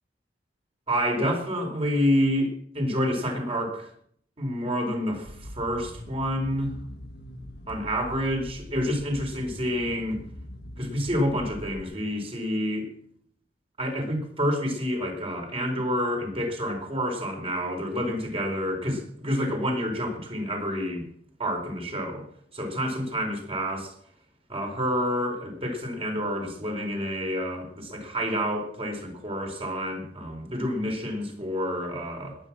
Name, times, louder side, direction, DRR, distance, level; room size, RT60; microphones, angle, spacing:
voice 1, 0.9-3.9 4.4-6.7 7.7-10.2 10.8-12.9 13.8-21.1 21.4-22.3 22.5-23.9 24.5-32.4, equal, 35° right, 3 dB, 4.5 m, -28 dB
sound 1, 5.2-11.8, equal, 60° left, 1.6 m, -42 dB
21.0 x 9.2 x 6.2 m, 0.64 s
head